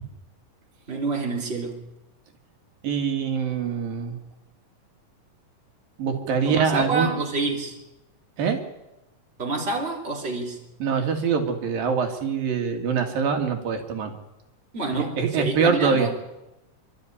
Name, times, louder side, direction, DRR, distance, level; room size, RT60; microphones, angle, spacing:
voice 1, 0.9-1.8 6.4-7.7 9.4-10.6 14.7-16.1, right 3 dB, 15° right, 0 dB, 3.5 m, -28 dB
voice 2, 2.8-4.2 6.0-7.1 8.4-8.6 10.8-14.1 14.9-16.1, right 6 dB, 80° right, 4 dB, 3.8 m, -24 dB
26.5 x 12.5 x 9.9 m, 0.93 s
omnidirectional pair, 4.0 m